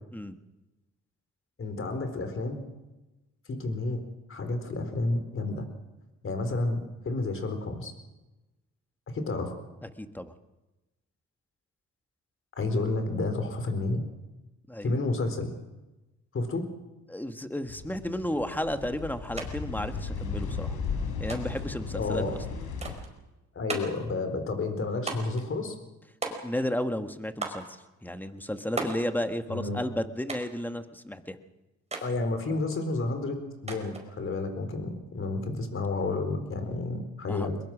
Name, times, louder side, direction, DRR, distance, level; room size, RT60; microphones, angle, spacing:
voice 1, 1.6-2.6 3.5-4.0 4.3-5.6 6.2-7.9 9.1-9.5 12.5-14.0 14.8-15.5 16.3-16.6 21.9-22.3 23.5-25.7 29.5-29.8 32.0-33.4 33.6-37.6, left 2 dB, 45° left, 8 dB, 4.4 m, -30 dB
voice 2, 9.8-10.3 14.7-14.9 17.1-20.8 21.2-22.4 26.3-31.4 37.3-37.5, left 1 dB, 5° left, 8 dB, 1.6 m, -33 dB
sound 1, 17.7-22.9, left 5 dB, 85° left, 4.5 m, -35 dB
sound 2, 19.4-19.5 19.8-20.5 21.3-21.7 22.8-23.1 23.7-24.1 25.1-25.5 26.2-26.8 27.4-27.7 28.8-29.1 30.3-30.6 31.9-32.1 33.7-34.1, right 3 dB, 20° right, 4.9 m, -36 dB
22.0 x 22.0 x 6.2 m, 1.1 s
cardioid pair, 90°, 30 cm